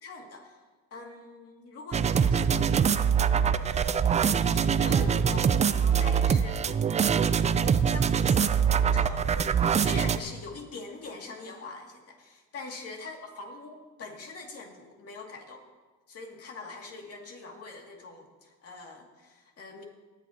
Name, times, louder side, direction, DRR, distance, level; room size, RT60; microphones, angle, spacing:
voice 1, 0.0-0.6 0.9-3.2 4.5-6.6 7.0-9.3 9.6-15.6 16.1-19.8, left 3 dB, 40° left, 1 dB, 2.4 m, -43 dB
sound 1, 1.9-10.2, right 7 dB, 20° right, 0.3 m, -24 dB
18.5 x 11.0 x 2.9 m, 1.3 s
cardioid pair, 115°, 35 cm